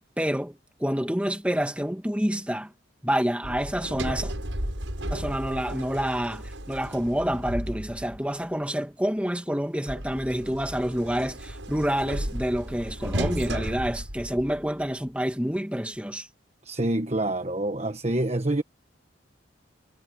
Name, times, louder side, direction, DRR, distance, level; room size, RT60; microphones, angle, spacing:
voice 1, 0.2-2.7 3.0-4.3 5.1-16.3, equal, 5° right, 2.0 m, -28 dB
Sliding door, 3.4-8.3 9.9-14.8, right 1 dB, 85° right, 7.6 m, -34 dB
voice 2, 16.6-18.6, right 1 dB, 35° right, 1.3 m, -26 dB
head